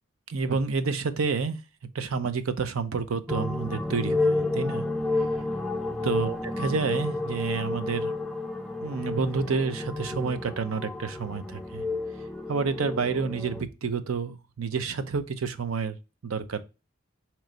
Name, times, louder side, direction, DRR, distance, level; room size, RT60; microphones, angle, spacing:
voice 1, 0.3-1.6 1.9-4.8 6.0-8.1 8.8-11.8 12.5-16.0 16.2-16.6, right 5 dB, 85° right, 0.6 m, -29 dB
sound 1, 3.3-13.6, left 2 dB, ahead, 0.3 m, -31 dB
4.4 x 3.1 x 3.8 m
head